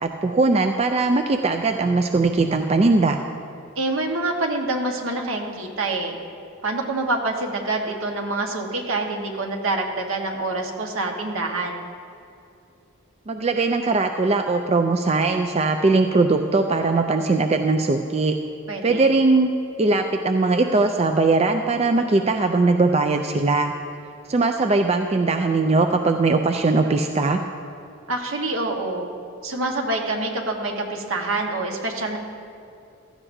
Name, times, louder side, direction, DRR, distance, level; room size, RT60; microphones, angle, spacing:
voice 1, 0.0-3.2 13.3-18.3 18.8-19.5 19.8-23.7 24.3-27.4, right 3 dB, 30° right, 6 dB, 0.4 m, -20 dB
voice 2, 3.8-6.2 6.6-11.9 18.7-19.1 28.1-29.1 29.4-32.2, right 2 dB, 70° right, 2 dB, 1.4 m, -26 dB
15.5 x 13.5 x 2.7 m, 2.5 s
head